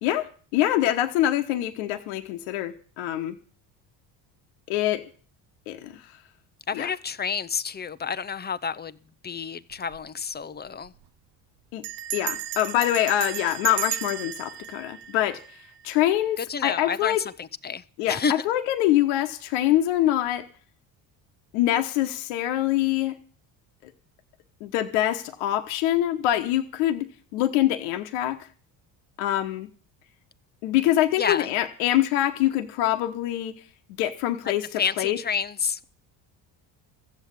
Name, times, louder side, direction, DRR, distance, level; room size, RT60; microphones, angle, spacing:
voice 1, 0.0-3.4 4.7-5.0 5.7-6.2 6.7-6.9 11.7-11.8 12.1-17.2 18.0-18.2 18.4-20.4 21.5-23.2 23.8-23.9 24.6-28.4 29.2-29.7 30.6-33.6 34.0-35.2, left 13 dB, 80° left, 1.2 m, -25 dB
voice 2, 6.7-9.0 9.2-10.9 16.4-18.3 31.2-31.5 34.8-35.9, left 6 dB, 20° left, 0.7 m, -29 dB
Bell, 9.7-10.1 10.3-10.4 10.7-11.0 11.8-15.9, right 12 dB, 55° right, 0.7 m, -34 dB
14.5 x 7.6 x 8.3 m
supercardioid pair, 70°, 49 cm